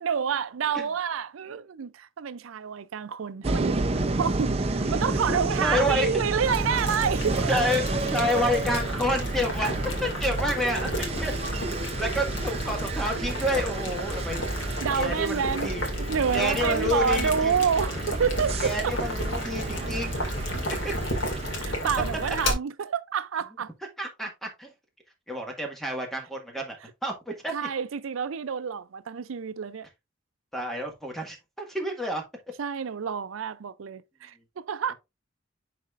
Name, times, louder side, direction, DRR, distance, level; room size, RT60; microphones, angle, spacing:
voice 1, 0.0-7.6 14.8-15.7 16.0-18.9 21.5-23.7 27.5-29.9 32.6-34.9, right 7 dB, 90° right, 0.5 m, -28 dB
sound 1, 3.4-21.5, right 2 dB, 30° right, 0.6 m, -31 dB
voice 2, 5.6-6.2 7.5-7.8 8.1-11.3 11.7-14.4 14.9-15.8 16.3-17.5 18.6-20.2 20.8-20.9 24.0-24.7 25.3-26.8 27.0-27.5 30.5-32.2, left 1 dB, ahead, 1.6 m, -29 dB
Boiling, 6.4-22.5, equal, 70° left, 2.2 m, -32 dB
10.5 x 4.2 x 2.5 m
head